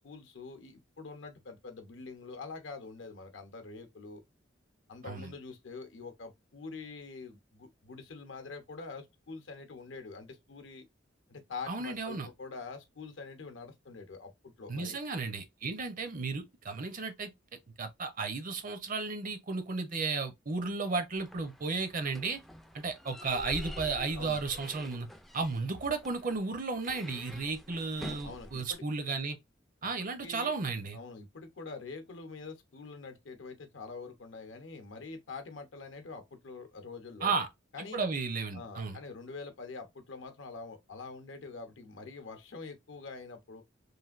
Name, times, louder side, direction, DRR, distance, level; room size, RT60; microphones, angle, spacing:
voice 1, 0.0-4.2 4.9-10.8 11.3-15.0 24.2-24.4 28.2-28.8 30.2-30.5 30.9-37.4 37.7-38.0 38.5-43.6, left 4 dB, 70° left, 0.7 m, -45 dB
voice 2, 11.7-12.3 14.7-17.3 17.8-22.4 22.7-25.1 25.3-29.4 29.8-31.0 37.2-37.5 37.8-39.0, right 4 dB, 45° right, 0.6 m, -34 dB
sound 1, 21.2-28.8, left 1 dB, ahead, 0.3 m, -47 dB
3.2 x 2.5 x 2.4 m
head